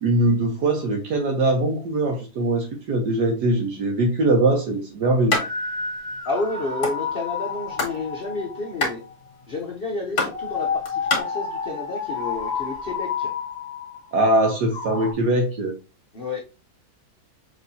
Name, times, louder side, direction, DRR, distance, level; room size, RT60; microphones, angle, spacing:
voice 1, 0.0-5.4 14.1-15.7, right 2 dB, 70° right, 2 dB, 1.4 m, -21 dB
sound 1, 5.3-5.5 5.8-5.9 6.1-7.0 7.4-8.0 8.3-11.2, left 3 dB, 55° left, 2.0 m, -26 dB
sound 2, 5.3-9.1 10.2-15.1, left 5 dB, 40° left, 1.4 m, -30 dB
voice 2, 6.2-9.0 9.5-13.3 16.1-16.4, left 3 dB, 75° left, 0 dB, 0.5 m, -30 dB
6.2 x 3.2 x 2.6 m, 0.31 s
omnidirectional pair, 2.0 m